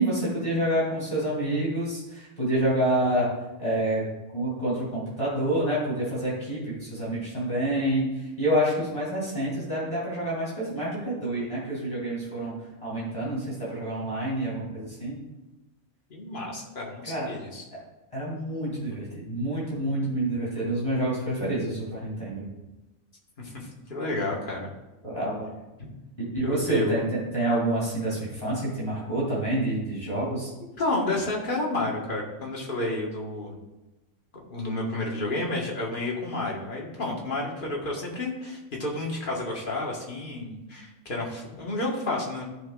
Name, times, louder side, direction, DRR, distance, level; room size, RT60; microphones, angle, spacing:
voice 1, 0.0-3.3 3.6-4.0 4.3-8.1 8.4-12.5 12.8-15.2 17.1-17.3 18.1-22.5 25.0-25.5 26.2-27.0 27.3-30.5, right 1 dB, 25° left, -8 dB, 2.9 m, -27 dB
voice 2, 16.1-17.7 23.4-24.7 26.4-27.1 30.8-33.5 34.5-42.5, left 2 dB, 40° left, -2 dB, 1.7 m, -31 dB
14.5 x 5.7 x 2.4 m, 1.1 s
omnidirectional pair, 1.4 m